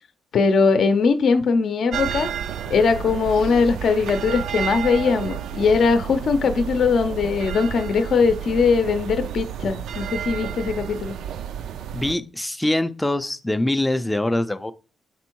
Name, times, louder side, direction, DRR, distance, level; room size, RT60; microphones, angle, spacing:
voice 1, 0.3-2.3 2.7-11.2, left 5 dB, 60° left, 0.6 m, -20 dB
sound 1, 1.9-12.1, right 9 dB, 85° right, 0.4 m, -31 dB
voice 2, 11.9-14.7, left 1 dB, 5° left, 0.4 m, -23 dB
6.1 x 3.5 x 4.5 m
cardioid pair, 140°, 0 cm